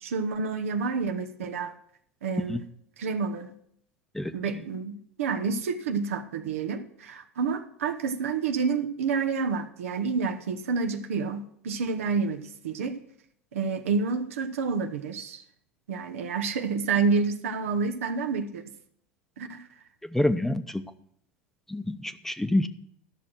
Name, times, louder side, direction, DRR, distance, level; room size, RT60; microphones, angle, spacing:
voice 1, 0.0-1.7 2.2-2.6 3.0-3.5 4.3-13.0 13.5-15.4 15.9-18.6 19.4-19.6, right 5 dB, 80° right, 6 dB, 0.9 m, -29 dB
voice 2, 20.1-20.8 21.7-22.7, left 1 dB, 5° left, 11 dB, 0.7 m, -27 dB
12.5 x 6.3 x 6.1 m, 0.67 s
hypercardioid pair, 90°, 7 cm